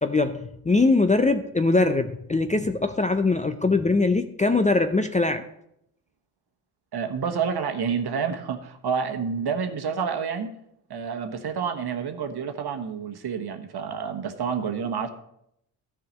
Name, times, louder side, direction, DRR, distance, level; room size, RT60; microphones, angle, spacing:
voice 1, 0.0-5.4, left 3 dB, 15° left, 8 dB, 0.5 m, -22 dB
voice 2, 6.9-10.5 10.9-15.1, right 6 dB, 50° right, 6 dB, 1.3 m, -29 dB
13.5 x 5.0 x 5.2 m, 0.77 s
supercardioid pair, 60°, 49 cm